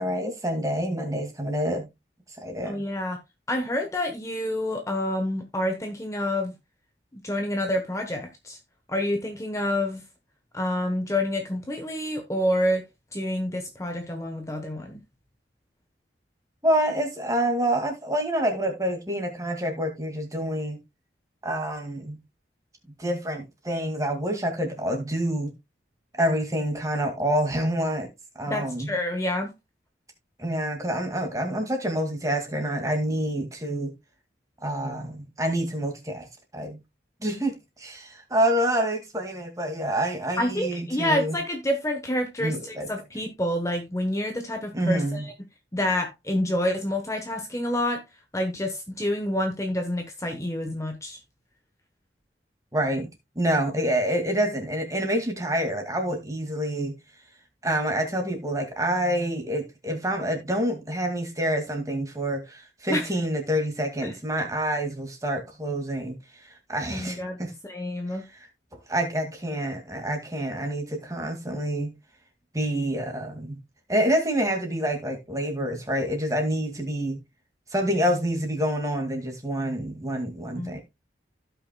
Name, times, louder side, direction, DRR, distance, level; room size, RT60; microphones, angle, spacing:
voice 1, 0.0-1.9 2.4-2.8 16.6-20.8 21.4-22.2 23.0-25.5 26.2-28.1 28.4-28.9 30.4-33.9 34.6-36.3 36.5-36.8 37.2-41.4 42.4-42.9 44.7-45.3 52.7-53.1 53.4-57.0 57.6-67.5 68.3-68.4 68.9-72.0 72.5-73.6 73.9-77.2 77.7-80.8, right 1 dB, 20° right, 2.2 m, -27 dB
voice 2, 2.6-3.2 3.5-6.5 7.1-8.6 8.9-10.0 10.5-12.9 13.1-15.0 28.5-29.5 40.4-45.3 45.7-48.0 48.3-51.2 62.9-63.1 64.0-64.1 66.9-67.4 67.6-68.2 80.6-80.7, left 1 dB, 15° left, 1.0 m, -28 dB
16.0 x 5.8 x 2.3 m
head